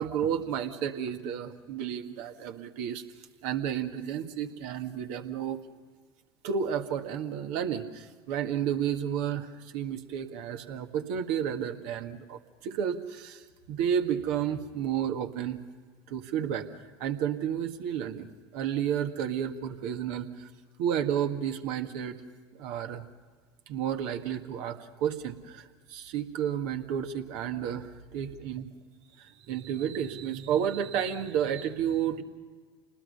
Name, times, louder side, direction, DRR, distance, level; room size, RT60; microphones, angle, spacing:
voice 1, 0.0-3.0 3.4-5.6 6.4-15.6 16.1-16.7 17.0-20.5 20.8-22.2 22.6-23.0 23.7-28.7 29.2-32.2, right 9 dB, 60° right, 5 dB, 1.9 m, -31 dB
28.5 x 20.0 x 5.5 m, 1.5 s
hypercardioid pair, 80°, 13 cm